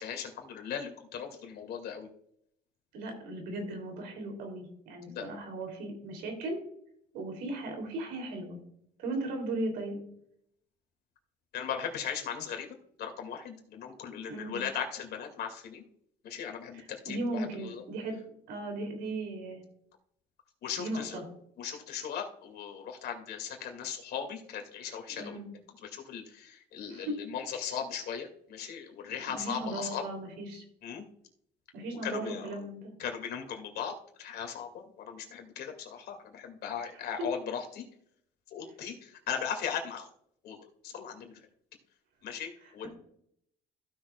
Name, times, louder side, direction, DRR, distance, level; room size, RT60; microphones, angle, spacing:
voice 1, 0.0-2.1 5.1-5.3 11.5-12.7 13.0-15.8 16.2-17.8 20.6-21.2 21.6-25.4 25.8-30.0 30.8-31.0 32.0-32.4 33.0-37.8 38.5-40.1 40.4-40.6 40.8-41.3 42.2-42.9, left 7 dB, 70° left, 3 dB, 2.2 m, -38 dB
voice 2, 2.9-6.6 7.1-8.6 9.0-10.0 14.3-14.6 16.7-18.1 18.5-19.6 20.8-21.2 25.2-25.5 26.9-27.1 29.2-30.6 31.7-32.9 36.9-37.3 42.6-42.9, right 2 dB, 90° right, 3 dB, 3.0 m, -37 dB
15.5 x 6.3 x 2.3 m, 0.70 s
cardioid pair, 110°, 17 cm